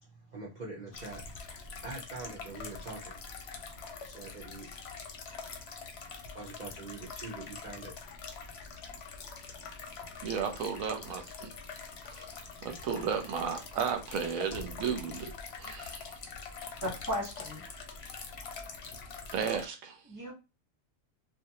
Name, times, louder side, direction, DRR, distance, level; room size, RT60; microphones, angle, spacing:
voice 1, 0.0-1.4 1.8-3.2 4.0-4.7 6.3-7.9, right 3 dB, 50° right, 0.6 m, -44 dB
sound 1, 0.9-19.7, left 5 dB, 60° left, 0.7 m, -44 dB
voice 2, 10.2-11.5 12.1-12.3 12.6-15.3 15.6-16.1 19.3-20.0, right 7 dB, 80° right, 1.0 m, -34 dB
voice 3, 16.8-17.6 20.0-20.3, equal, 15° right, 0.8 m, -35 dB
2.5 x 2.2 x 2.8 m
omnidirectional pair, 1.4 m